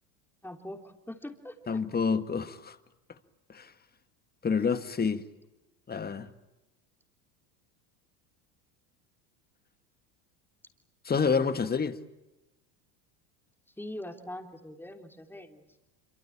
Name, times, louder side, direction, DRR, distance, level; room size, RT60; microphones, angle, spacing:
voice 1, 0.4-1.8 13.8-15.7, left 1 dB, 5° left, 3.5 m, -42 dB
voice 2, 1.7-2.8 3.5-3.7 4.4-5.2 5.9-6.3 11.1-11.9, left 5 dB, 20° left, 1.8 m, -28 dB
26.0 x 24.0 x 8.7 m
supercardioid pair, 100°, 45 cm